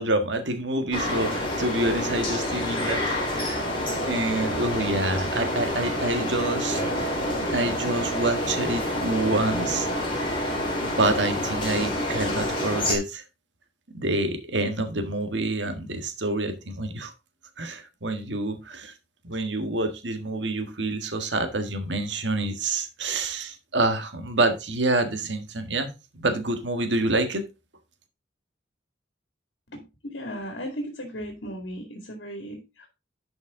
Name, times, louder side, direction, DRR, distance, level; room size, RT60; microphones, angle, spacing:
voice 1, 0.0-3.6 4.0-7.2 7.5-10.3 10.8-13.2 13.9-17.1 17.6-18.9 19.2-25.9 26.1-27.4, right 2 dB, 70° right, 1.6 m, -27 dB
sound 1, 0.9-13.0, left 1 dB, 30° left, 3.5 m, -28 dB
voice 2, 29.7-32.9, equal, 70° left, 2.2 m, -36 dB
11.5 x 5.3 x 3.7 m
head